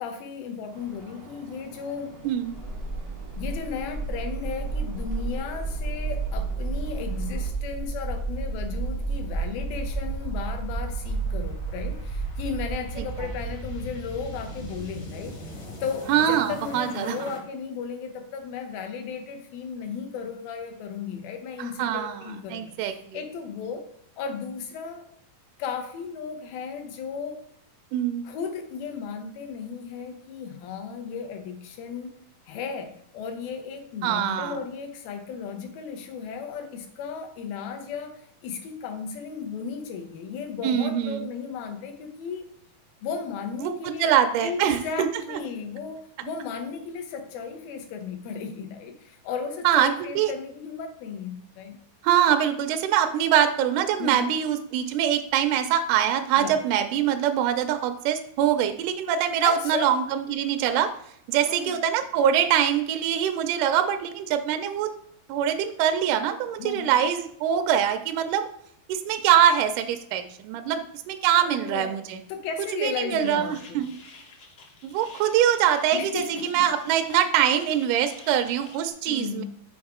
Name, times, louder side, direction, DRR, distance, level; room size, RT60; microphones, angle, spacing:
voice 1, 0.0-2.2 3.4-15.4 15.8-23.8 24.2-25.0 25.6-27.4 28.3-32.2 32.5-42.4 43.0-44.1 44.4-51.8 54.0-54.3 56.3-56.6 59.4-59.9 61.5-61.7 66.6-66.9 71.4-72.0 72.3-73.9 75.9-76.7 79.1-79.4, left 6 dB, 85° left, 5 dB, 2.6 m, -35 dB
sound 1, 0.7-7.5, right 3 dB, 70° right, 1.0 m, -48 dB
voice 2, 2.2-2.6 13.0-13.3 16.1-17.2 21.6-22.2 22.5-23.2 27.9-28.3 34.0-34.6 40.6-41.3 43.6-43.7 44.0-45.1 49.6-50.3 52.0-60.9 61.3-64.9 65.3-68.4 68.9-72.2 72.8-73.9 74.8-79.4, right 10 dB, 85° right, 7 dB, 1.8 m, -23 dB
sound 2, 2.5-17.4, right 3 dB, 50° left, 1.1 m, -32 dB
sound 3, 73.1-78.9, left 4 dB, 65° left, 1.3 m, -49 dB
6.2 x 4.6 x 3.6 m, 0.69 s
omnidirectional pair, 4.1 m